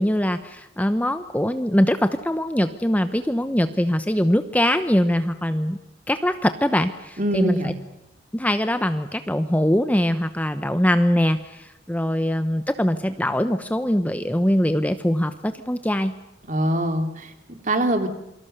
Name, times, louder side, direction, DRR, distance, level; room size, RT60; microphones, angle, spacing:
voice 1, 0.0-5.8 6.1-7.7 8.3-16.1, equal, 10° left, 9 dB, 0.9 m, -22 dB
voice 2, 7.2-7.7 16.5-18.1, right 1 dB, 40° right, 6 dB, 2.9 m, -23 dB
28.0 x 24.5 x 6.7 m, 0.91 s
head